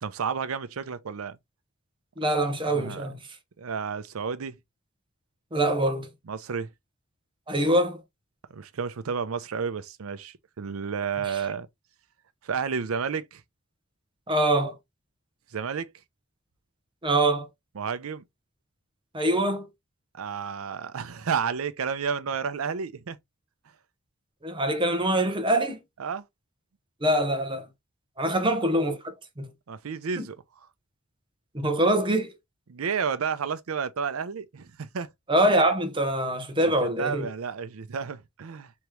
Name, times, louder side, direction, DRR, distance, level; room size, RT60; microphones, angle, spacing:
voice 1, 0.0-1.4 2.7-3.1 3.6-4.6 6.3-6.7 8.5-11.7 12.4-13.4 15.5-15.9 17.8-18.2 20.1-23.2 26.0-26.3 28.4-28.5 29.7-30.4 32.7-35.1 36.6-36.7 37.0-38.7, right 6 dB, 85° right, 0.5 m, -31 dB
voice 2, 2.2-3.2 5.5-6.1 7.5-8.0 14.3-14.8 17.0-17.5 19.1-19.7 24.4-25.8 27.0-27.7 28.2-29.5 30.2-30.3 31.5-32.3 35.3-37.3, right 1 dB, 25° right, 0.8 m, -24 dB
3.6 x 3.0 x 3.1 m
head